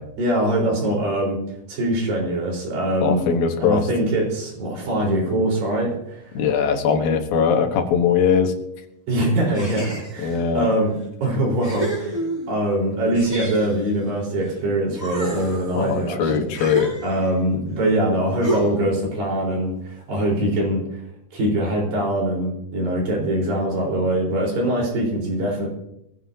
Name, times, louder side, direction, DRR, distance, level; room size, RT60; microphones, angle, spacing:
voice 1, 0.2-1.4 1.7-3.3 3.6-6.3 9.1-12.2 12.5-16.5 17.0-20.8 21.3-25.7, right 1 dB, 75° right, -2 dB, 6.1 m, -23 dB
voice 2, 3.0-3.9 6.3-8.5 10.2-10.7 15.7-16.9, left 6 dB, 85° left, 5 dB, 3.1 m, -20 dB
sound 1, 9.5-10.4 11.0-11.1 11.6-12.6 13.1-14.6 14.9-17.4 18.4-19.0, right 1 dB, 5° right, 4.5 m, -30 dB
21.0 x 15.0 x 2.8 m, 0.79 s
omnidirectional pair, 4.0 m